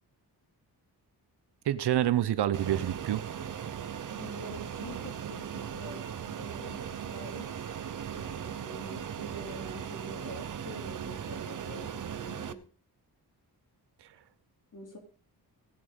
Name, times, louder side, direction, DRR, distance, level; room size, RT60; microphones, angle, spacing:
voice 1, 1.7-3.2, right 12 dB, 85° right, 0.9 m, -27 dB
Fixed-wing aircraft airplane, 2.5-12.5, right 8 dB, 50° right, 0.9 m, -38 dB
voice 2, 4.1-7.5 8.2-12.6 14.7-15.0, equal, 50° left, 3.8 m, -46 dB
17.5 x 7.3 x 5.2 m
wide cardioid pair, 145°, 39 cm